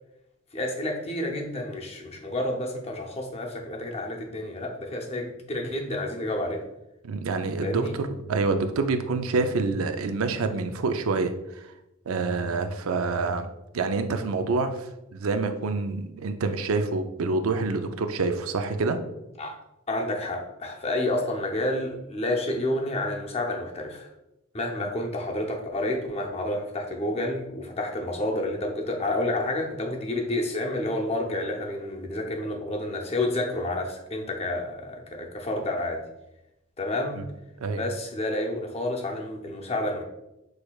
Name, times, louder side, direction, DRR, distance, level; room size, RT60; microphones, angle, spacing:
voice 1, 0.5-6.7 7.6-8.0 19.4-19.6 19.9-24.1 24.5-36.0 36.8-37.2 37.7-40.0, left 1 dB, 30° left, 1 dB, 0.6 m, -29 dB
voice 2, 7.0-11.7 12.1-13.5 13.7-19.0 24.8-24.9 37.2-37.3 37.6-37.8, right 3 dB, 80° right, 8 dB, 0.5 m, -27 dB
6.2 x 3.2 x 2.3 m, 0.91 s
head